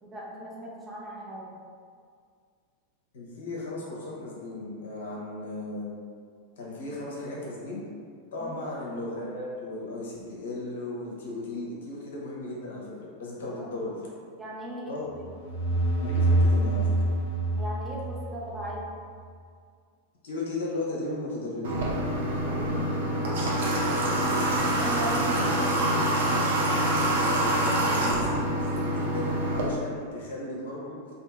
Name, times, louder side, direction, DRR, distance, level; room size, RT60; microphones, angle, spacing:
voice 1, 0.0-1.6 8.4-8.6 13.5-13.7 14.4-15.3 17.5-18.9 22.5-23.2 24.8-25.8, right 1 dB, 10° right, -6 dB, 0.6 m, -38 dB
voice 2, 3.1-6.0 6.6-7.8 8.3-14.0 14.9-15.1 16.0-16.9 20.2-21.9 27.3-30.9, left 2 dB, 60° left, -4 dB, 0.6 m, -36 dB
sound 1, 15.1-18.8, right 2 dB, 85° right, 1.0 m, -26 dB
Water / Water tap faucet, 21.6-29.7, right 1 dB, 55° right, 0.4 m, -26 dB
2.7 x 2.4 x 2.4 m, 2.1 s
figure-of-eight pair, 90°, 0 cm